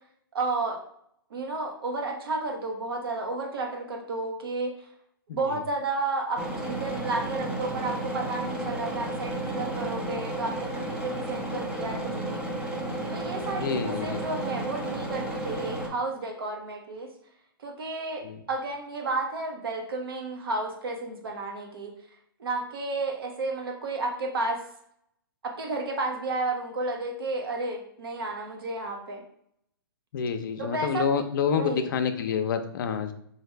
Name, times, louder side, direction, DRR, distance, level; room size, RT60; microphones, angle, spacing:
voice 1, 0.3-0.8 1.3-4.7 5.3-12.5 13.1-17.1 17.6-22.0 22.4-24.6 25.4-29.2 30.6-31.1 31.5-31.9, right 2 dB, 75° right, 3 dB, 1.1 m, -32 dB
voice 2, 5.3-5.6 13.5-14.2 18.2-18.4 30.1-33.1, left 6 dB, 55° left, 7 dB, 0.5 m, -28 dB
sound 1, 6.4-15.9, right 1 dB, 5° right, 0.6 m, -32 dB
4.8 x 2.6 x 3.2 m, 0.69 s
hypercardioid pair, 145°, 12 cm